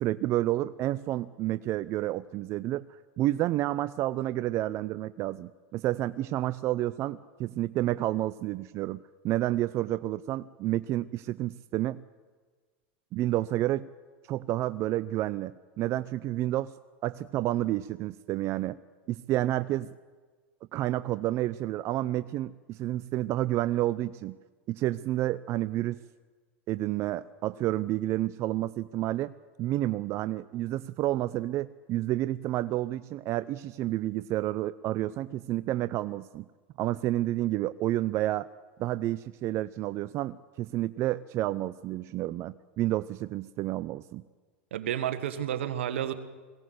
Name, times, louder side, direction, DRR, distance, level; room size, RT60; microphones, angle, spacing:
voice 1, 0.0-12.0 13.1-13.9 14.3-16.7 17.0-18.8 19.1-19.9 20.7-24.4 24.7-26.0 26.7-29.3 29.6-36.5 36.8-38.5 38.8-44.2, right 15 dB, 45° right, 14 dB, 0.6 m, -30 dB
voice 2, 44.7-46.1, right 10 dB, 80° right, 10 dB, 1.6 m, -31 dB
21.5 x 17.0 x 8.0 m, 1.4 s
hypercardioid pair, 105°, 6 cm